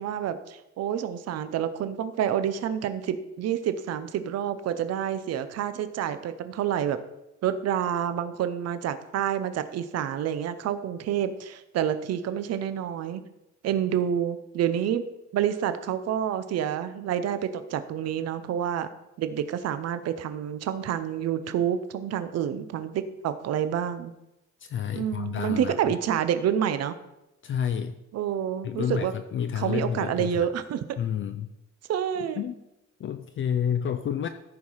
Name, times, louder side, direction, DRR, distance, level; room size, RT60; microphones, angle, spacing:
voice 1, 0.0-7.0 7.4-13.2 13.6-15.0 15.3-18.9 19.2-24.1 24.9-26.9 28.1-29.1 29.6-30.8 31.9-32.4, right 9 dB, 55° right, 11 dB, 0.7 m, -28 dB
voice 2, 24.6-26.0 27.4-28.0 28.6-30.5 31.0-31.5 32.4-32.6 33.0-34.3, left 8 dB, 40° left, 9 dB, 0.5 m, -30 dB
14.0 x 4.9 x 5.6 m, 0.90 s
cardioid pair, 180°, 30 cm